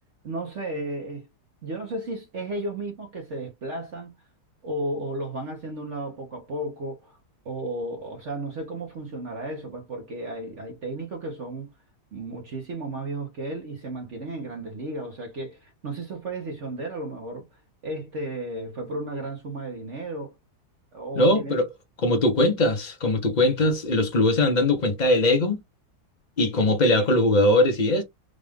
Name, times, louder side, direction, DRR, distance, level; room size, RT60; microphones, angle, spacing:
voice 1, 0.2-1.3 1.6-4.1 4.6-7.2 7.4-11.7 12.1-17.5 17.8-20.3 20.9-21.6, right 2 dB, 50° right, 1.1 m, -33 dB
voice 2, 21.1-21.7 22.0-25.6 26.4-28.0, left 1 dB, 35° left, 0.7 m, -21 dB
3.8 x 2.4 x 3.4 m
omnidirectional pair, 1.8 m